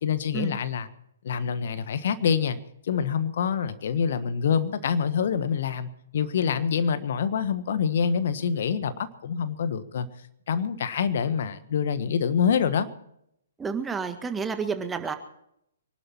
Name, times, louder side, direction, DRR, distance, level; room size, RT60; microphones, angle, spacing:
voice 1, 0.0-0.9 1.2-2.6 2.9-10.1 10.5-12.9, left 7 dB, 55° left, 12 dB, 1.4 m, -26 dB
voice 2, 13.6-15.1, right 5 dB, 10° right, 8 dB, 1.7 m, -30 dB
25.0 x 12.0 x 4.5 m, 0.76 s
figure-of-eight pair, 125°, 0 cm